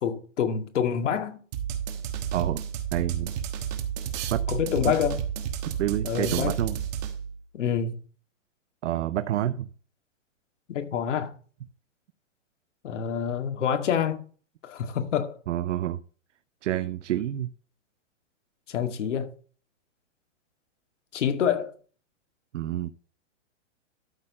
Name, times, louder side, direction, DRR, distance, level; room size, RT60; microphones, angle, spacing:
voice 1, 0.0-1.4 4.5-5.2 6.0-6.5 7.5-8.0 10.7-11.3 12.8-14.2 14.6-15.4 18.7-19.3 21.1-21.7, left 8 dB, 70° left, 2.1 m, -27 dB
sound 1, 1.5-7.4, right 8 dB, 35° right, 1.3 m, -31 dB
voice 2, 2.9-3.3 4.3-4.4 4.8-4.9 5.8-6.8 8.8-9.7 15.5-16.0 16.6-17.5 22.5-22.9, right 12 dB, 70° right, 0.7 m, -28 dB
12.5 x 4.4 x 5.5 m
hypercardioid pair, 160°, 37 cm